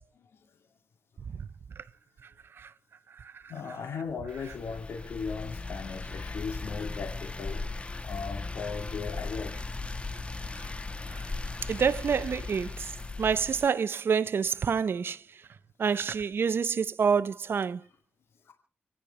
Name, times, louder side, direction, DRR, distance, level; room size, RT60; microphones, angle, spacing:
voice 1, 3.5-7.6 8.0-9.6 18.5-18.6, left 5 dB, 85° left, 2.4 m, -37 dB
sound 1, 4.3-13.7, left 3 dB, 30° left, 1.1 m, -37 dB
voice 2, 11.7-12.7 13.2-15.2 15.8-17.8, right 6 dB, 65° right, 0.6 m, -27 dB
30.0 x 10.0 x 3.3 m
cardioid pair, 75°, 4 cm